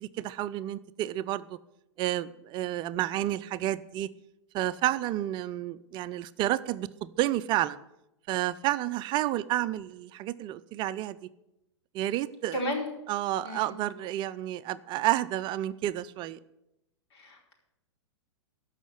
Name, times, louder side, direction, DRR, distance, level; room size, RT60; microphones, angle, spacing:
voice 1, 0.0-1.6 2.0-4.1 4.5-7.8 8.3-11.3 11.9-12.6 13.1-16.4, right 14 dB, 30° right, 14 dB, 0.5 m, -30 dB
voice 2, 12.5-12.9 13.4-13.7 17.2-17.5, equal, 60° left, 0 dB, 4.7 m, -33 dB
13.5 x 5.7 x 9.4 m, 0.89 s
hypercardioid pair, 110°, 15 cm